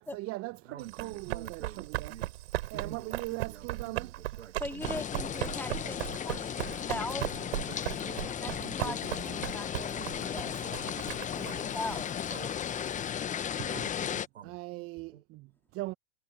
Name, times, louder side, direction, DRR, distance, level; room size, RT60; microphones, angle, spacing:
voice 1, 0.0-2.2 2.7-4.2 13.6-13.7 14.4-15.9, right 21 dB, 40° right, 1.1 m, -40 dB
voice 2, 0.7-2.3 2.7-3.2 3.9-4.0 4.4-4.5 5.8-5.9 6.9-7.0 7.7-8.3 8.6-11.8 12.3-12.5 13.6-14.8 15.1-15.2, right 10 dB, 80° right, 1.7 m, -47 dB
Run, 0.8-13.1, right 16 dB, 65° right, 7.7 m, -38 dB
voice 3, 4.6-7.3 8.3-10.6 11.4-12.1, left 2 dB, 5° left, 2.9 m, -40 dB
sound 1, 4.8-14.3, left 9 dB, 20° left, 1.1 m, -35 dB
hypercardioid pair, 100°, 35 cm